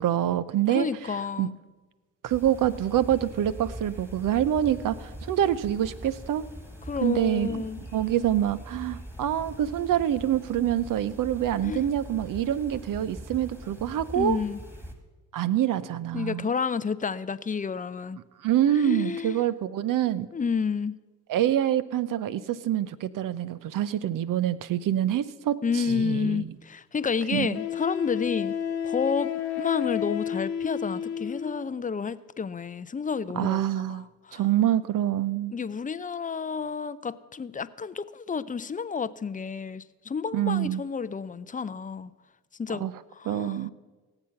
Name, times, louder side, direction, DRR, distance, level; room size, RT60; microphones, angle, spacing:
voice 1, 0.0-0.9 1.4-1.5 2.2-6.5 7.0-14.4 15.3-16.5 18.4-20.3 21.3-26.4 27.3-27.6 33.3-34.0 34.3-35.5 40.3-40.8 42.8-42.9 43.3-43.7, right 11 dB, 50° right, 16 dB, 0.8 m, -26 dB
voice 2, 0.7-1.6 6.9-7.8 11.6-11.9 14.1-14.6 16.1-18.2 18.7-19.4 20.3-21.0 25.6-28.5 28.8-29.3 29.6-33.6 33.9-34.4 35.5-42.1 42.6-42.9 43.2-43.7, left 5 dB, 20° left, 17 dB, 0.6 m, -30 dB
sound 1, 2.3-14.9, equal, 5° right, 2.3 m, -42 dB
Wind instrument woodwind instrument, 26.2-26.3 27.5-31.6, left 9 dB, 80° left, 1.3 m, -31 dB
17.5 x 7.9 x 5.7 m, 1.3 s
hypercardioid pair, 50°, 41 cm